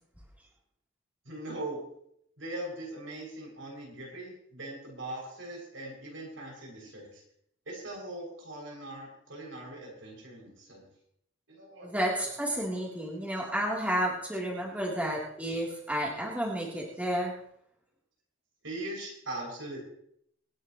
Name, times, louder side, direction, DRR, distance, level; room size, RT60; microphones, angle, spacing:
voice 1, 1.2-1.8 2.4-7.2 7.6-10.8 11.5-12.0 18.6-19.9, right 1 dB, 80° right, -2 dB, 6.7 m, -40 dB
voice 2, 11.8-17.3, equal, 10° right, -4 dB, 3.3 m, -31 dB
25.5 x 10.5 x 3.1 m, 0.70 s
head